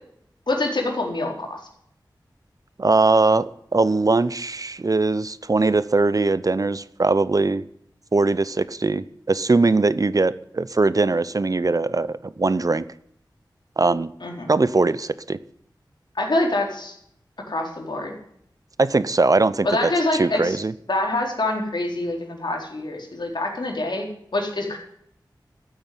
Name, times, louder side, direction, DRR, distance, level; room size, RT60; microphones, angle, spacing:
voice 1, 0.5-1.6 14.2-14.5 16.1-16.9 17.5-18.2 19.6-20.6 20.9-24.1 24.3-24.8, left 2 dB, 70° left, 1 dB, 4.1 m, -25 dB
voice 2, 2.8-7.6 8.1-12.8 13.8-14.1 14.5-15.4 18.8-19.9 20.2-20.7, right 3 dB, 45° right, 16 dB, 0.7 m, -21 dB
14.0 x 8.7 x 9.6 m, 0.70 s
wide cardioid pair, 70°, 8 cm